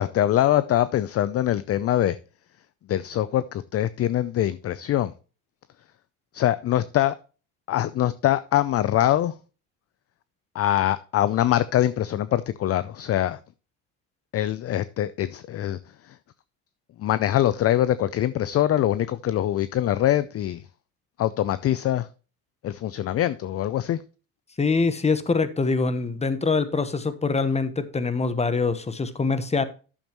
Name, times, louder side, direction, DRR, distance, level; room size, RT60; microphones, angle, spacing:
voice 1, 0.0-2.2 2.9-5.1 6.3-7.2 7.7-9.3 10.5-13.4 14.3-16.2 17.0-20.6 21.2-22.1 22.6-24.0, left 12 dB, 35° left, 0.5 m, -23 dB
voice 2, 24.6-29.6, left 4 dB, 15° left, 1.1 m, -24 dB
10.5 x 7.1 x 3.0 m
supercardioid pair, 90°, 43 cm